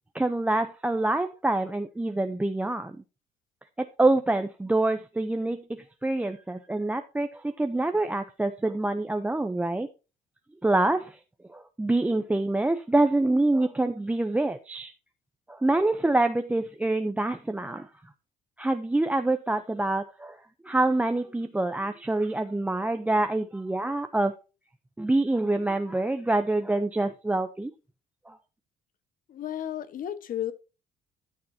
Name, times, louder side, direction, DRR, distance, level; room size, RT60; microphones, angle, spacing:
voice 1, 0.1-2.9 3.8-5.6 6.0-9.9 10.6-11.2 11.5-14.9 15.5-17.9 18.6-20.4 20.6-24.3 25.0-27.7 28.3-28.4, right 2 dB, 10° right, 0.7 m, -26 dB
voice 2, 29.3-30.5, left 11 dB, 55° left, 1.3 m, -33 dB
13.5 x 6.6 x 2.8 m
cardioid pair, 110°, 17 cm